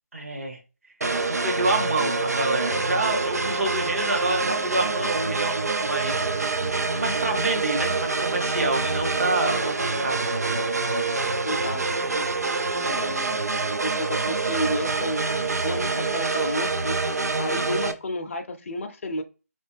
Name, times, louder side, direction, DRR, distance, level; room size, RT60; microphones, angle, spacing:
voice 1, 0.1-0.6 1.3-6.3 6.9-10.2, right 2 dB, 55° right, 1 dB, 1.1 m, -27 dB
sound 1, 1.0-17.9, right 3 dB, 75° right, 0.5 m, -26 dB
voice 2, 11.4-11.8 12.1-12.3 12.8-13.4 13.8-15.3 15.6-17.0 17.4-19.2, left 1 dB, 50° left, 5 dB, 0.5 m, -31 dB
2.9 x 2.6 x 3.4 m, 0.30 s
figure-of-eight pair, 150°, 9 cm